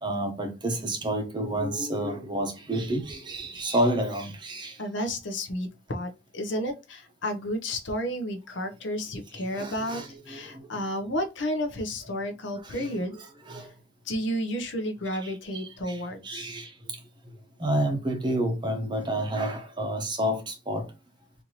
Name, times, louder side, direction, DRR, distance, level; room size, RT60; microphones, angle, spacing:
voice 1, 0.0-4.7 9.5-10.4 12.7-13.6 15.2-15.3 15.5-16.0 16.2-16.7 17.6-20.8, right 1 dB, 20° right, 0.7 m, -29 dB
voice 2, 4.8-13.1 14.0-16.5, equal, 60° left, 0.7 m, -32 dB
4.4 x 2.6 x 2.8 m
head